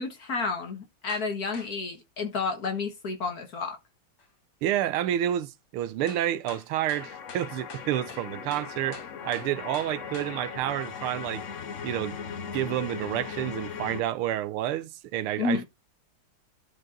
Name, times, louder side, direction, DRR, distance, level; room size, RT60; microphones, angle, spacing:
voice 1, 0.0-3.8 15.4-15.7, left 4 dB, 45° left, 1.8 m, -31 dB
sound 1, 1.1-1.3 1.5-1.7 4.2-4.3 6.1-10.3, left 3 dB, 85° left, 3.3 m, -45 dB
voice 2, 4.6-11.4 11.8-12.2 12.5-15.7, right 12 dB, 80° right, 1.5 m, -29 dB
sound 2, 6.9-14.0, left 6 dB, 60° left, 0.8 m, -38 dB
12.0 x 4.8 x 3.8 m
omnidirectional pair, 2.4 m